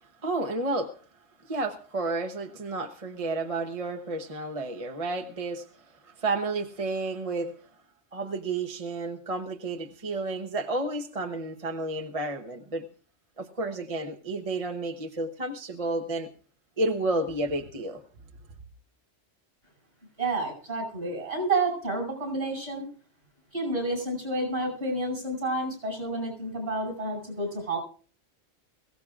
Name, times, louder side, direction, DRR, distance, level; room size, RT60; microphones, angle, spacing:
voice 1, 0.0-0.9 1.4-7.5 8.1-12.9 13.4-16.3 16.8-18.0, right 2 dB, 30° right, 0.9 m, -31 dB
voice 2, 20.2-22.9 23.5-27.8, right 2 dB, 60° right, 6.0 m, -30 dB
22.0 x 16.5 x 2.4 m
omnidirectional pair, 1.3 m